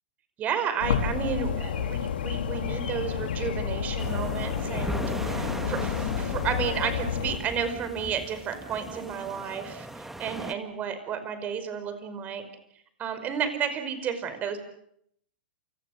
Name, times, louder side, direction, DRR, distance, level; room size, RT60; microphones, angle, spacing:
voice 1, 0.4-12.4 13.0-14.6, right 7 dB, 30° right, 10 dB, 5.3 m, -32 dB
sound 1, 0.8-7.4, left 7 dB, 75° left, 4.4 m, -30 dB
sound 2, 4.0-10.5, right 1 dB, 5° right, 2.1 m, -38 dB
28.5 x 26.5 x 6.7 m, 0.72 s
hypercardioid pair, 120°, 5 cm